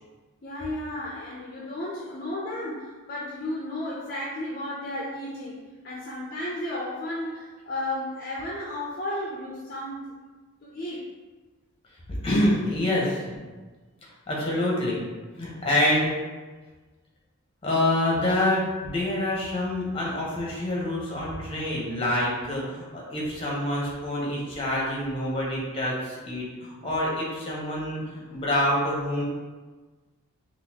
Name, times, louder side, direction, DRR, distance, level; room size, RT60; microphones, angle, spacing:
voice 1, 0.4-10.2 10.6-11.0 22.7-22.8, left 1 dB, 45° left, -5 dB, 0.4 m, -33 dB
voice 2, 12.1-13.2 14.3-15.0 15.3-16.1 17.6-29.2, left 1 dB, 25° left, -4 dB, 0.8 m, -26 dB
3.9 x 2.4 x 2.7 m, 1.3 s
head